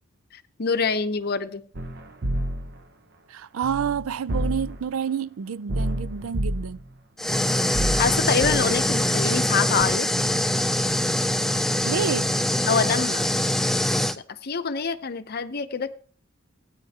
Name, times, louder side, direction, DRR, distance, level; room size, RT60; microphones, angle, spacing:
voice 1, 0.3-1.6 7.9-10.1 12.7-13.3 14.3-15.9, left 5 dB, 50° left, 0.7 m, -25 dB
sound 1, 1.7-2.8 3.6-4.8 5.7-6.9 7.7-9.0 9.8-9.9, right 1 dB, 50° right, 0.8 m, -29 dB
voice 2, 3.3-6.8 11.8-12.4, right 7 dB, 90° right, 0.4 m, -29 dB
sound 2, 7.2-14.2, left 1 dB, ahead, 0.4 m, -23 dB
16.5 x 9.4 x 2.8 m
head